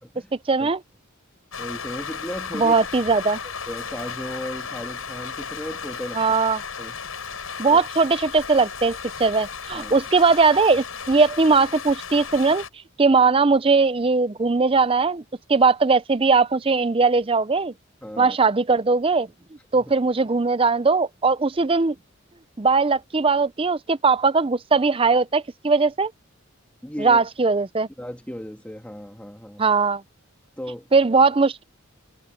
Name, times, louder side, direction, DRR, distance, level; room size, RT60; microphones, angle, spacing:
voice 1, 0.5-0.8 2.5-3.4 6.2-6.6 7.6-12.6 13.0-15.2 15.5-17.7 18.2-19.3 19.7-21.9 22.6-26.1 27.0-27.9 29.6-30.0 30.9-31.6, right 4 dB, 25° right, 0.5 m, -19 dB
Rain, 1.5-12.7, left 6 dB, 85° left, 7.2 m, -35 dB
voice 2, 1.6-2.9 3.4-6.2 6.8-7.0 7.7-7.8 9.7-9.9 18.0-18.4 19.7-19.9 26.8-27.2 28.0-29.6 30.6-30.9, equal, 5° left, 1.7 m, -35 dB
head